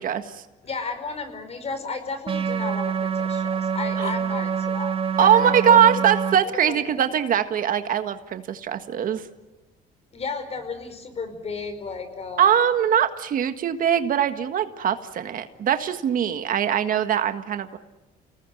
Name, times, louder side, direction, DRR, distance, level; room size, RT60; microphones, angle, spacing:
voice 1, 0.0-0.4 4.0-4.1 5.2-9.3 12.4-17.8, right 9 dB, 55° right, 8 dB, 1.7 m, -21 dB
voice 2, 0.6-5.9 6.6-7.0 10.1-12.5, left 4 dB, 40° left, 9 dB, 5.1 m, -33 dB
sound 1, 2.3-6.4, right 6 dB, 35° right, 2.3 m, -26 dB
29.5 x 19.0 x 9.2 m, 1.1 s
cardioid pair, 110°, 17 cm